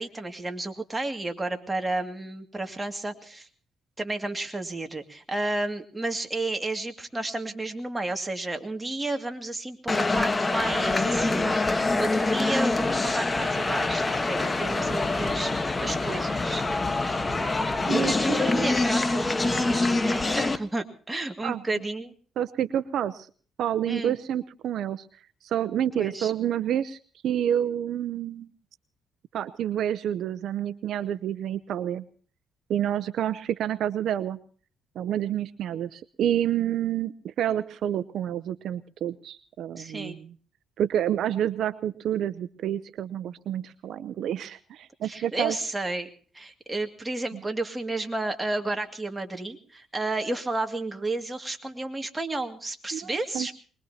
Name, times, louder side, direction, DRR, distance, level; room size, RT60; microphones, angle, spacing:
voice 1, 0.0-3.5 4.0-16.6 17.1-17.3 18.0-22.1 23.8-24.2 26.0-26.3 39.8-40.2 45.0-46.1 46.3-53.6, right 2 dB, 15° right, 5 dB, 2.3 m, -32 dB
sound 1, 9.9-20.6, left 2 dB, 20° left, 1.3 m, -25 dB
voice 2, 17.9-18.4 21.4-21.8 22.4-23.3 23.6-25.1 25.4-27.0 27.2-28.5 29.3-32.0 32.7-34.4 35.0-40.3 40.8-45.6 47.3-47.4 52.9-53.6, right 10 dB, 75° right, 16 dB, 0.7 m, -29 dB
24.0 x 21.0 x 2.9 m, 0.41 s
cardioid pair, 90°, 0 cm